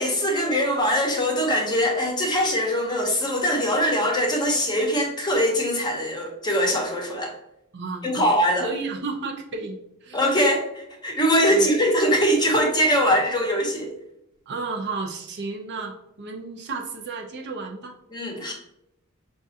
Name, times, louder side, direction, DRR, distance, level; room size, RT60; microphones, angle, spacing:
voice 1, 0.0-7.3 8.0-8.7 10.1-13.9 18.1-18.5, equal, 20° left, 1 dB, 0.8 m, -22 dB
voice 2, 7.7-8.3 8.6-10.2 11.5-11.7 14.5-17.9, right 4 dB, 55° right, 2 dB, 0.6 m, -32 dB
5.2 x 2.4 x 2.7 m, 0.83 s
head